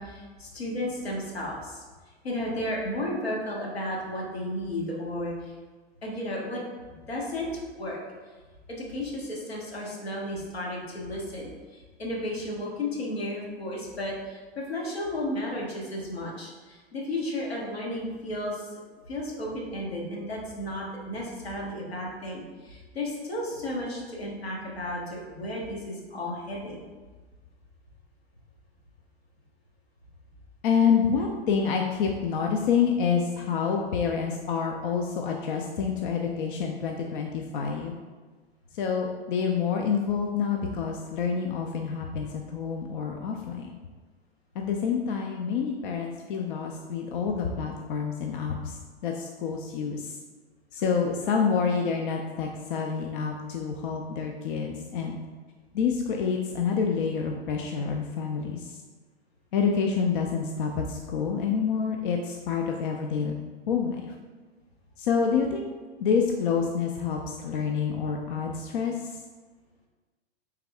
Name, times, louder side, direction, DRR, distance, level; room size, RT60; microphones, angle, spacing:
voice 1, 0.0-1.8 2.2-5.5 6.0-6.6 7.1-8.0 8.7-18.8 19.1-26.8, left 1 dB, 80° left, -3 dB, 1.1 m, -33 dB
voice 2, 30.6-38.0 38.7-43.7 44.6-48.8 49.0-50.2 50.7-55.2 55.7-58.8 59.5-63.3 63.7-64.1 65.0-65.7 66.0-69.2, left 6 dB, 55° left, 1 dB, 0.5 m, -27 dB
3.4 x 3.3 x 3.4 m, 1.4 s
figure-of-eight pair, 95°, 31 cm